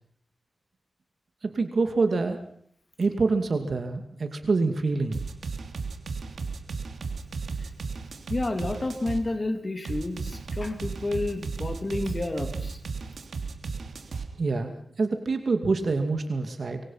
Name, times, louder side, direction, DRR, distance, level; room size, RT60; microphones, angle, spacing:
voice 1, 1.4-2.4 3.0-5.2 14.4-16.8, right 3 dB, 55° right, 7 dB, 2.5 m, -26 dB
sound 1, 5.1-9.2 9.8-14.3, right 4 dB, 75° right, 3.1 m, -34 dB
voice 2, 8.3-12.8, left 2 dB, 30° left, 7 dB, 3.0 m, -30 dB
25.0 x 24.5 x 5.8 m, 0.65 s
wide cardioid pair, 120°, 0 cm